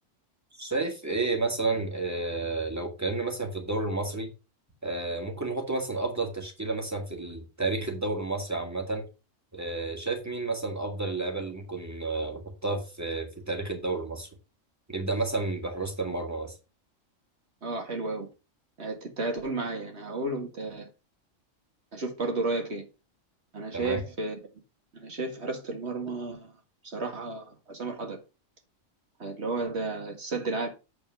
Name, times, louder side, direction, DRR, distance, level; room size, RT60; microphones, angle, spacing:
voice 1, 0.6-4.3 4.8-9.0 9.5-14.3 14.9-16.5 23.7-24.0, right 3 dB, 10° right, 2.1 m, -31 dB
voice 2, 17.6-18.3 18.8-20.9 21.9-22.8 23.5-24.4 24.9-26.5 26.8-28.2 29.2-30.7, right 3 dB, 55° right, 2.1 m, -32 dB
7.9 x 4.4 x 5.8 m
omnidirectional pair, 1.4 m